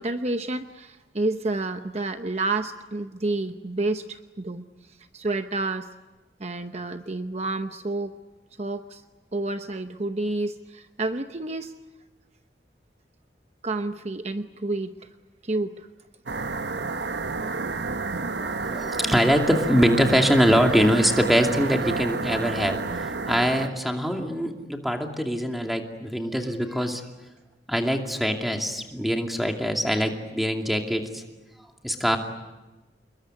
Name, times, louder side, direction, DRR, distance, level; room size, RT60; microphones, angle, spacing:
voice 1, 0.0-5.9 6.4-8.2 8.6-9.0 9.3-11.7 13.6-14.9 15.4-15.9, right 2 dB, 40° right, 8 dB, 0.9 m, -29 dB
sound 1, 16.3-23.7, right 3 dB, 75° right, 1.1 m, -30 dB
voice 2, 18.4-27.0 27.7-31.2 31.8-32.2, equal, ahead, 3 dB, 2.5 m, -23 dB
27.5 x 22.0 x 9.5 m, 1.1 s
head